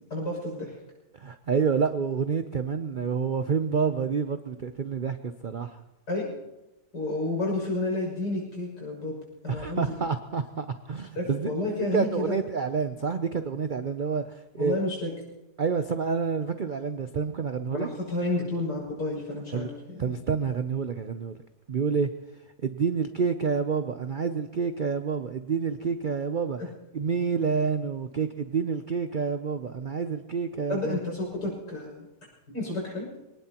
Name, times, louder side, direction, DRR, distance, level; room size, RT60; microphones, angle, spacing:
voice 1, 0.1-0.7 6.1-6.3 6.9-9.2 9.4-9.9 11.1-12.4 14.6-15.1 17.7-20.1 30.7-32.1 32.5-33.1, left 2 dB, 90° left, -2 dB, 7.1 m, -30 dB
voice 2, 1.2-5.8 9.5-11.5 11.9-14.8 15.6-17.9 19.5-19.7 20.0-21.4 21.7-22.1 22.6-26.6 26.9-31.0, right 5 dB, 85° right, 9 dB, 0.4 m, -28 dB
24.0 x 18.5 x 2.9 m, 0.98 s
omnidirectional pair, 1.8 m